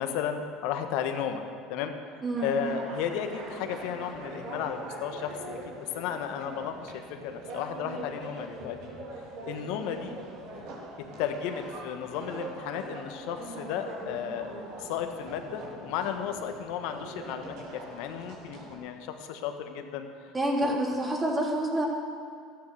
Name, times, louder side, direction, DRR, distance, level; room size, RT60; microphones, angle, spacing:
voice 1, 0.0-1.4 1.7-1.9 2.4-8.8 9.5-10.2 11.2-20.3 20.6-20.8, left 8 dB, 70° left, 6 dB, 1.3 m, -34 dB
sound 1, 2.3-18.8, right 2 dB, 65° right, 3.7 m, -42 dB
voice 2, 20.3-21.9, right 1 dB, 15° right, -3 dB, 3.7 m, -27 dB
13.5 x 9.3 x 6.6 m, 2.2 s
hypercardioid pair, 80°, 0 cm